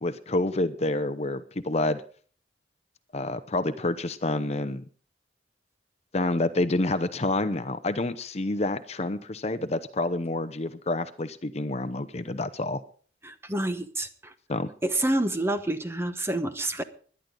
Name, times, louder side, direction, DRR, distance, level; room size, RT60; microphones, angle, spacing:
voice 1, 0.0-2.0 3.1-4.8 6.1-12.8 14.5-14.7, left 2 dB, 35° left, 12 dB, 0.8 m, -28 dB
voice 2, 13.2-14.3 14.8-16.8, right 1 dB, 15° right, 10 dB, 0.9 m, -28 dB
20.5 x 10.5 x 3.8 m, 0.43 s
head